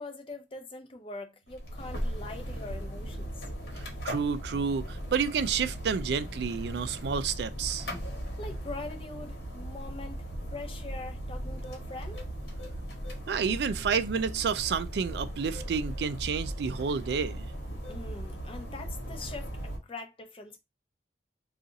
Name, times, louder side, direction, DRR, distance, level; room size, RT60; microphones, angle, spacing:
voice 1, 0.0-3.4 8.4-12.2 17.9-20.6, left 2 dB, 30° left, 0.6 m, -43 dB
sound 1, 1.5-19.8, equal, 70° left, 1.2 m, -38 dB
voice 2, 4.0-7.9 13.3-17.5, right 6 dB, 65° right, 0.3 m, -30 dB
2.7 x 2.4 x 3.8 m
head